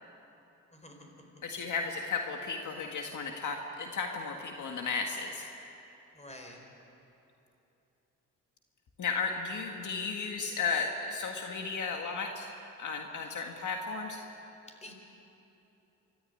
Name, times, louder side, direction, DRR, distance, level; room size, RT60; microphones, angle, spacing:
voice 1, 0.7-1.4 6.1-6.6 14.8-14.9, left 1 dB, 20° left, 2 dB, 4.7 m, -49 dB
voice 2, 1.4-5.5 9.0-12.5 12.8-14.2, left 5 dB, 65° left, 2 dB, 1.8 m, -34 dB
26.0 x 14.0 x 9.9 m, 3.0 s
cardioid pair, 85°, 32 cm